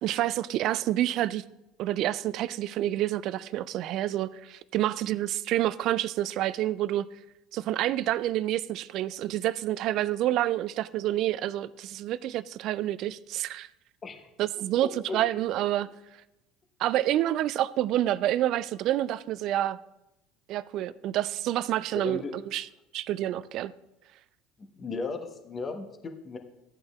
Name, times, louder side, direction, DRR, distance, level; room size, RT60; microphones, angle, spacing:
voice 1, 0.0-1.4 1.8-7.1 7.5-13.7 14.4-15.9 16.8-19.8 20.5-22.7 22.9-23.7, right 13 dB, 55° right, 0.3 m, -28 dB
voice 2, 14.8-15.2 21.9-22.4 24.6-26.4, left 4 dB, 30° left, 1.1 m, -36 dB
14.0 x 8.7 x 2.4 m
figure-of-eight pair, 65°, 0 cm